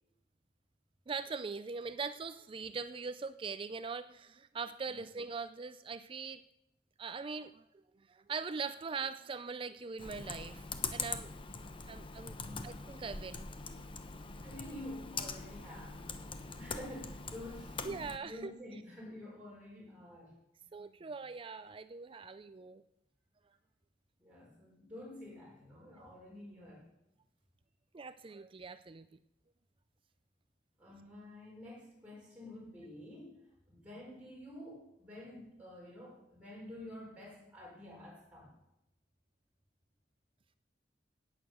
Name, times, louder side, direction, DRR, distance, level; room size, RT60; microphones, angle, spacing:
voice 1, 1.1-6.4 7.0-7.6 8.1-10.6 10.9-11.3 11.9-12.4 12.6-13.5 17.8-18.5 20.7-22.8 27.9-29.1, right 5 dB, 30° right, 12 dB, 0.4 m, -41 dB
Computer keyboard, 10.0-18.2, left 4 dB, 30° left, 1.0 m, -43 dB
voice 2, 14.4-16.0 16.6-20.3 24.2-26.9 30.8-33.4 33.7-38.5, left 1 dB, 10° right, -6 dB, 4.3 m, -49 dB
17.0 x 9.1 x 6.4 m, 0.88 s
head